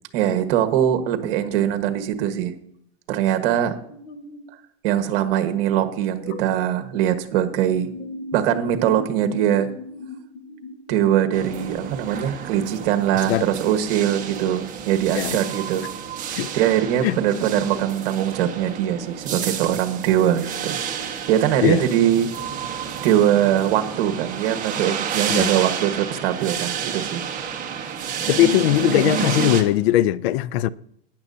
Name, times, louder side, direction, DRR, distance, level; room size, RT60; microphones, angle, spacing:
voice 1, 0.1-2.5 3.1-3.7 4.8-7.9 8.3-9.7 10.9-15.8 16.5-20.8 21.3-22.3 23.0-27.2, right 10 dB, 55° right, 1.5 m, -21 dB
sound 1, 3.9-4.4 6.2-7.2 7.6-11.7, left 2 dB, 45° left, 1.3 m, -38 dB
sound 2, 11.3-29.6, right 7 dB, 25° right, 1.4 m, -30 dB
voice 2, 28.3-30.7, left 14 dB, 65° left, 0.5 m, -20 dB
14.5 x 10.0 x 2.7 m
supercardioid pair, 145°, 33 cm